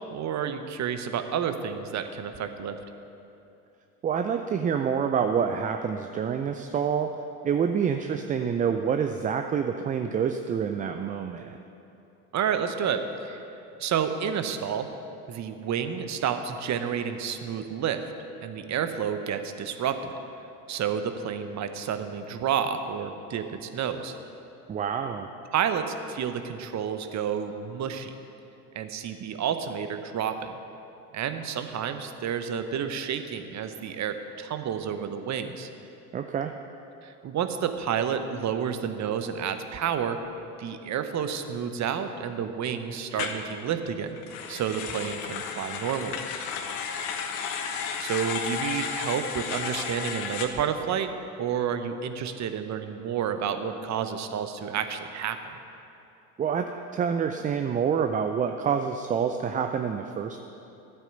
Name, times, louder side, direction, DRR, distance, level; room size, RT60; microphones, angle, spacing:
voice 1, 0.1-2.8 12.3-14.9 15.3-18.1 18.4-20.1 20.7-24.2 25.5-28.2 28.7-30.6 31.1-35.7 37.0-40.2 40.6-44.2 44.5-46.3 48.0-51.1 51.4-55.6, right 8 dB, 35° right, 9 dB, 1.0 m, -30 dB
voice 2, 4.0-7.1 7.4-11.6 24.7-25.3 36.1-36.5 56.4-60.4, right 7 dB, 20° right, 6 dB, 0.4 m, -27 dB
sound 1, 43.1-43.4 44.2-50.5, left 6 dB, 60° left, 1.4 m, -33 dB
12.0 x 9.0 x 6.7 m, 2.8 s
hypercardioid pair, 75°, 46 cm